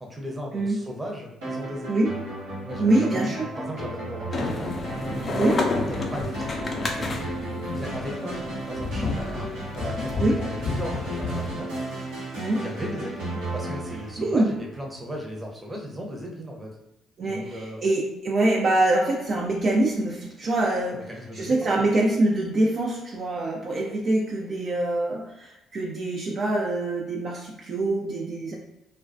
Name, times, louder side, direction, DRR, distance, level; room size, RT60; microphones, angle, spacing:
voice 1, 0.0-2.2 2.6-4.7 5.8-6.6 7.7-11.7 12.6-16.8 17.2-17.8 20.9-21.9, equal, 15° right, 0 dB, 0.7 m, -36 dB
sound 1, 1.4-14.9, right 2 dB, 80° right, 0.8 m, -34 dB
voice 2, 2.8-3.5 5.3-5.6 10.2-10.4 12.4-12.6 14.2-14.5 17.2-21.0 21.3-28.6, right 2 dB, 50° right, -2 dB, 0.4 m, -24 dB
sound 2, 4.3-11.5, left 3 dB, 40° left, 0.4 m, -30 dB
2.2 x 2.2 x 2.5 m, 0.92 s
hypercardioid pair, 50°, 0 cm